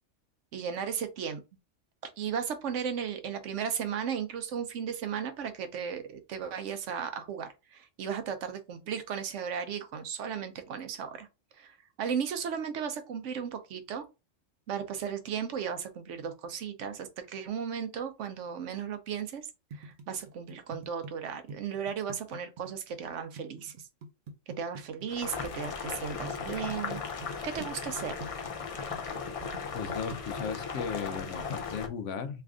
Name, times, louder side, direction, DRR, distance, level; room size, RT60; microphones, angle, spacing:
voice 1, 0.5-1.4 2.0-11.3 11.5-14.0 14.7-23.9 24.6-28.1, right 7 dB, 75° right, 1.0 m, -35 dB
sound 1, 19.7-25.7 26.2-27.3 27.6-30.4, right 3 dB, 50° right, 0.7 m, -44 dB
Boiling, 25.1-31.9, left 5 dB, 50° left, 0.4 m, -37 dB
voice 2, 29.7-32.4, left 6 dB, 75° left, 0.9 m, -36 dB
3.3 x 2.4 x 3.5 m
omnidirectional pair, 1.3 m